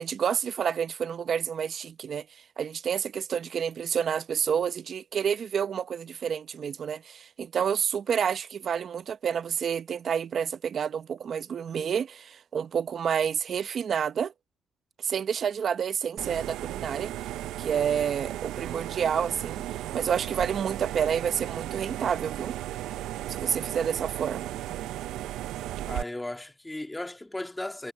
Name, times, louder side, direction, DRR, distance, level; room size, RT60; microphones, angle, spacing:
voice 1, 0.0-2.3 2.6-14.3 15.0-17.1 17.6-22.5 23.3-24.5, right 7 dB, 55° right, 0.9 m, -29 dB
sound 1, 16.2-26.0, right 14 dB, 90° right, 0.6 m, -35 dB
voice 2, 25.9-27.9, left 1 dB, 10° left, 2.1 m, -36 dB
cardioid pair, 90°, 0 cm